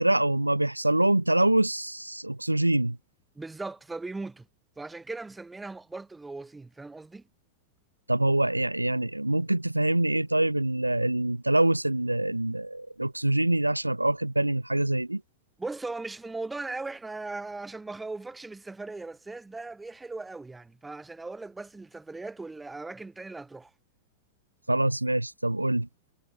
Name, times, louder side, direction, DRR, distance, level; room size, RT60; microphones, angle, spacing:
voice 1, 0.0-3.0 8.1-15.2 24.7-25.9, right 1 dB, 85° right, 3.1 m, -25 dB
voice 2, 3.4-4.5 4.8-7.2 15.6-23.7, right 3 dB, 10° right, 7.6 m, -38 dB
figure-of-eight pair, 90°, 0 cm